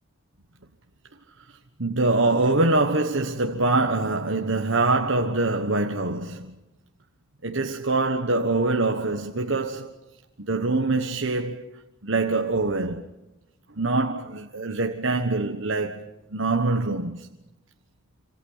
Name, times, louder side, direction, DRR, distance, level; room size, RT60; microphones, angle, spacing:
voice 1, 1.8-6.5 7.4-10.0 10.4-13.1 13.8-17.3, right 2 dB, 65° right, 1.4 m, -24 dB
27.5 x 26.0 x 5.7 m
head